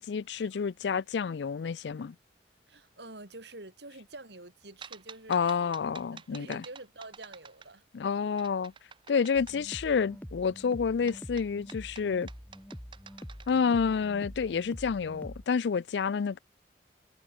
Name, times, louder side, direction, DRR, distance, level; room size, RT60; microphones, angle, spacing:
voice 1, 0.0-2.2 5.3-6.6 7.9-8.7 9.1-12.3 13.5-16.4, left 6 dB, 75° left, 0.4 m, -29 dB
voice 2, 2.7-5.7 6.1-7.8, right 2 dB, 70° right, 6.1 m, -47 dB
sound 1, 4.8-8.0 8.4-9.6 11.1-13.7, right 6 dB, 30° right, 0.8 m, -50 dB
sound 2, 9.3-15.4, equal, 10° left, 2.6 m, -45 dB
head